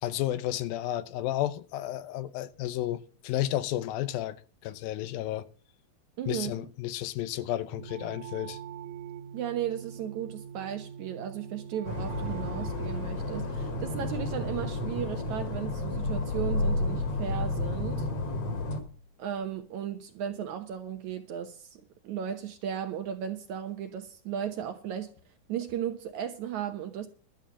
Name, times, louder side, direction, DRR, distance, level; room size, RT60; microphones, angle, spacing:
voice 1, 0.0-5.5 6.3-8.6, left 13 dB, 80° left, 2.5 m, -32 dB
voice 2, 6.2-6.7 9.3-18.1 19.2-25.1 25.5-27.1, right 9 dB, 70° right, 2.0 m, -35 dB
sound 1, 7.7-15.1, right 8 dB, 90° right, 2.8 m, -43 dB
sound 2, 11.8-18.8, left 2 dB, 50° left, 2.6 m, -33 dB
sound 3, 15.9-18.9, left 2 dB, 65° left, 5.2 m, -32 dB
12.5 x 7.3 x 7.4 m
omnidirectional pair, 4.2 m